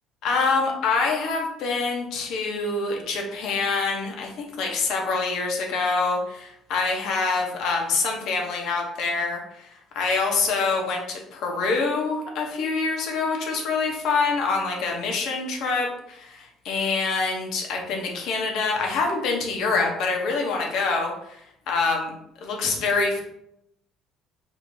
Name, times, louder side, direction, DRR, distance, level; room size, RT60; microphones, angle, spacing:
voice 1, 0.2-21.4 21.7-22.1 22.4-23.2, left 4 dB, 60° left, 1 dB, 0.8 m, -25 dB
4.6 x 2.7 x 2.6 m, 0.79 s
cardioid pair, 150°, 0 cm